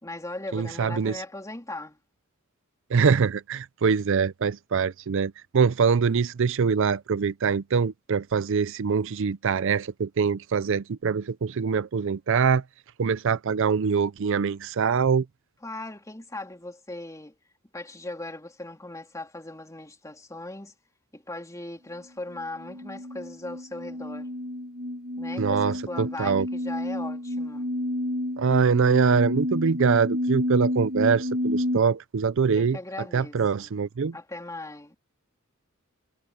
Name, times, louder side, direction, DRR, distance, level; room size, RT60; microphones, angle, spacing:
voice 1, 0.0-2.0 15.6-17.4 17.7-20.7 21.1-24.3 25.2-27.7 32.5-33.7 34.1-35.0, left 2 dB, 15° left, 3.1 m, -38 dB
voice 2, 0.5-1.2 2.9-12.6 13.0-15.3 25.4-26.5 28.4-32.8 33.1-34.1, right 6 dB, 65° right, 0.5 m, -24 dB
sound 1, 22.3-31.8, left 1 dB, 45° right, 1.5 m, -30 dB
head